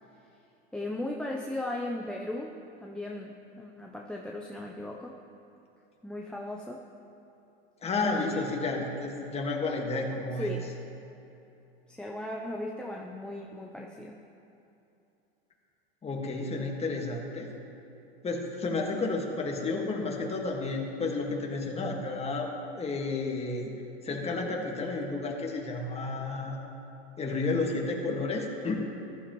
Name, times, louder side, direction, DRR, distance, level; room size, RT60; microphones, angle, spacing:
voice 1, 0.7-5.2 6.0-6.8 8.0-8.4 10.4-10.8 11.9-14.2, left 1 dB, 5° left, -1 dB, 0.6 m, -37 dB
voice 2, 7.8-10.5 16.0-17.5 18.2-23.7 24.0-26.6 27.2-28.8, left 3 dB, 20° left, 0 dB, 1.7 m, -31 dB
14.5 x 12.0 x 3.1 m, 2.9 s
hypercardioid pair, 105°, 31 cm